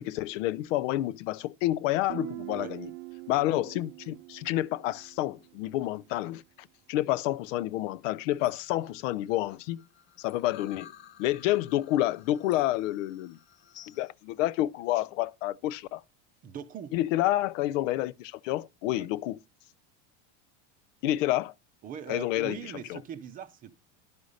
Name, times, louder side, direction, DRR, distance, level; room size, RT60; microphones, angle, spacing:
voice 1, 0.0-2.9 3.3-9.9 10.2-10.9 11.2-13.4 13.9-16.0 16.9-19.4 21.0-21.5 22.1-23.0, left 15 dB, 85° left, 0.7 m, -29 dB
Guitar, 2.1-5.7, right 20 dB, 60° right, 0.5 m, -43 dB
sound 1, 8.3-14.1, left 11 dB, 30° left, 0.5 m, -54 dB
voice 2, 16.4-16.9 18.9-19.1 21.8-23.7, right 8 dB, 25° right, 0.6 m, -41 dB
11.5 x 5.4 x 6.4 m
cardioid pair, 175°, 37 cm